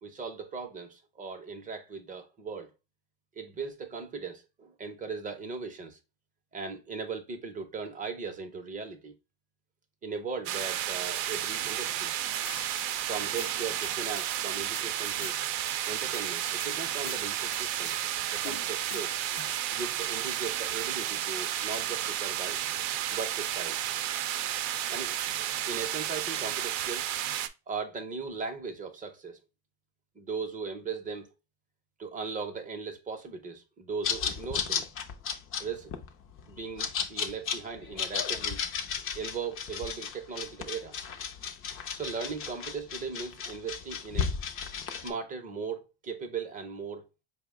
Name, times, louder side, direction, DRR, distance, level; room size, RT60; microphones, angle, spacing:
voice 1, 0.0-2.7 3.4-6.0 6.5-9.1 10.0-12.6 13.0-15.4 15.9-17.9 18.3-19.1 19.7-22.6 23.1-23.8 24.9-25.2 25.7-27.2 27.7-29.4 30.2-31.3 32.0-34.9 35.6-35.9 36.5-38.6 39.1-41.0 42.0-44.3 44.9-47.1, right 5 dB, 20° right, 0.5 m, -38 dB
sound 1, 10.5-27.5, right 11 dB, 80° right, 0.6 m, -32 dB
sound 2, 12.4-13.0 13.4-14.9 15.2-15.7 16.1-16.7 17.1-18.0 18.4-19.6, left 10 dB, 80° left, 0.7 m, -46 dB
sound 3, 34.0-45.1, left 7 dB, 30° left, 0.4 m, -34 dB
4.9 x 2.1 x 3.4 m
cardioid pair, 145°, 44 cm